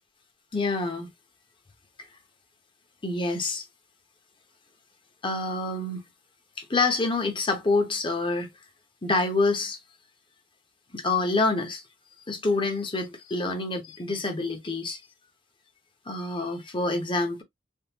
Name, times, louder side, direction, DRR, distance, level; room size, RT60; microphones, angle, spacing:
voice 1, 0.5-1.1 3.0-3.6 5.2-6.0 6.6-8.5 9.0-9.8 10.9-11.8 12.3-15.0 16.1-17.4, left 3 dB, 25° left, 0.8 m, -27 dB
3.6 x 2.4 x 2.9 m
head